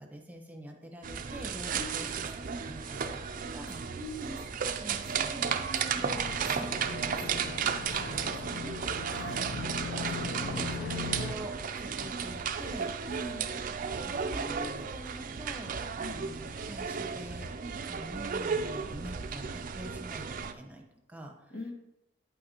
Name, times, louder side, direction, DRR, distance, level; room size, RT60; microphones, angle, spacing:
voice 1, 0.0-3.8 4.8-8.8 10.0-13.2 13.5-17.5 17.8-21.6, right 1 dB, 10° right, 1 dB, 0.9 m, -46 dB
sound 1, 1.0-20.5, right 6 dB, 40° right, 0.4 m, -34 dB
sound 2, 1.6-8.3, equal, 25° left, 2.4 m, -58 dB
voice 2, 1.7-2.1 3.9-4.4 9.1-9.5 13.1-13.5 16.0-16.2 21.5-21.7, left 1 dB, 80° left, 0 dB, 1.7 m, -41 dB
sound 3, 6.1-11.3, left 4 dB, 55° left, 0.5 m, -39 dB
8.9 x 8.4 x 2.9 m, 0.89 s
head